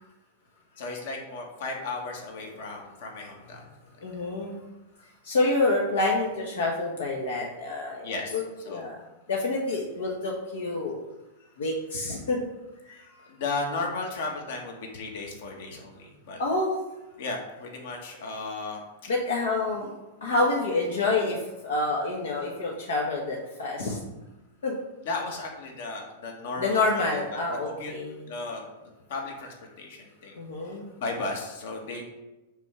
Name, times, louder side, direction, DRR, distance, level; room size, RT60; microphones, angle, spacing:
voice 1, 0.7-3.6 8.0-8.3 8.6-8.8 12.9-16.4 17.2-19.1 25.0-27.0 27.3-27.4 27.7-27.9 28.3-28.6 29.1-30.3 31.0-32.0, left 3 dB, 70° left, 1 dB, 1.7 m, -35 dB
voice 2, 4.0-4.5 5.2-9.0 9.3-11.0 11.6-12.5 12.8-13.0 16.4-16.7 19.1-19.9 20.2-24.0 24.6-24.8 26.6-28.2 30.3-30.8, left 2 dB, 90° left, -2 dB, 1.2 m, -28 dB
5.9 x 3.6 x 5.9 m, 1.0 s
hypercardioid pair, 135°, 0 cm